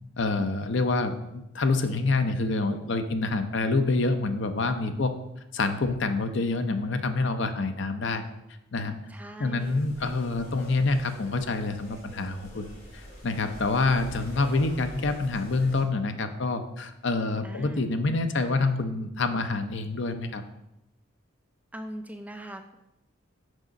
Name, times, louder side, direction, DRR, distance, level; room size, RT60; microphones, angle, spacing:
voice 1, 0.2-5.1 5.5-8.2 8.7-9.0 9.4-12.7 12.9-20.4, left 3 dB, 60° left, 8 dB, 0.6 m, -27 dB
voice 2, 9.1-9.8 17.4-17.9 21.7-22.7, equal, 5° right, 6 dB, 0.4 m, -41 dB
sound 1, 9.6-15.8, left 1 dB, 40° left, 2.3 m, -45 dB
6.4 x 4.9 x 5.2 m, 0.87 s
head